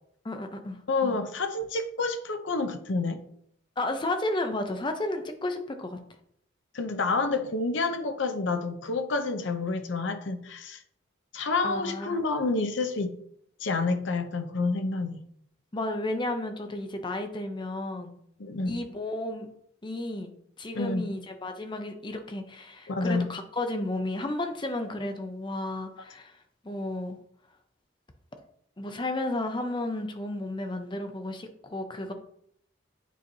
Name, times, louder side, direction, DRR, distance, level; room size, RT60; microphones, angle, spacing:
voice 1, 0.2-1.2 3.8-6.0 11.6-12.2 15.7-18.2 18.6-19.5 19.8-27.2 28.8-32.1, left 2 dB, 25° left, 6 dB, 0.6 m, -33 dB
voice 2, 0.9-3.2 6.7-10.8 11.3-13.2 13.6-15.2 18.4-18.8 20.7-21.1 22.9-23.3, left 3 dB, 65° left, 8 dB, 0.6 m, -29 dB
9.1 x 4.4 x 2.7 m, 0.71 s
head